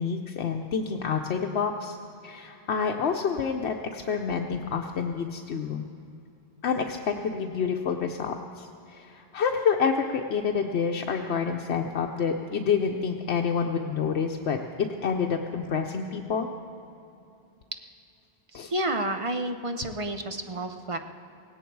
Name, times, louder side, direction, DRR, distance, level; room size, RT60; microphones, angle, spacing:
voice 1, 0.0-2.0 2.2-5.9 6.6-16.5 18.5-18.7, left 6 dB, 80° left, 2 dB, 1.0 m, -28 dB
voice 2, 18.7-21.0, right 1 dB, 35° right, 7 dB, 0.8 m, -30 dB
17.5 x 17.0 x 4.7 m, 2.7 s
omnidirectional pair, 1.1 m